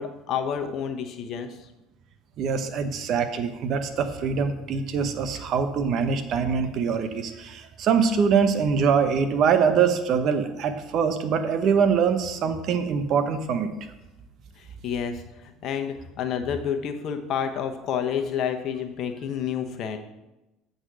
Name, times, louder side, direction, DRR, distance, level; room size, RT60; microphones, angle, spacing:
voice 1, 0.0-1.5 14.8-15.2 15.6-20.0, left 8 dB, 55° left, 5 dB, 1.0 m, -29 dB
voice 2, 2.4-13.7 17.4-17.5, right 6 dB, 55° right, 9 dB, 0.8 m, -23 dB
8.0 x 4.0 x 6.1 m, 1.0 s
supercardioid pair, 80°, 0 cm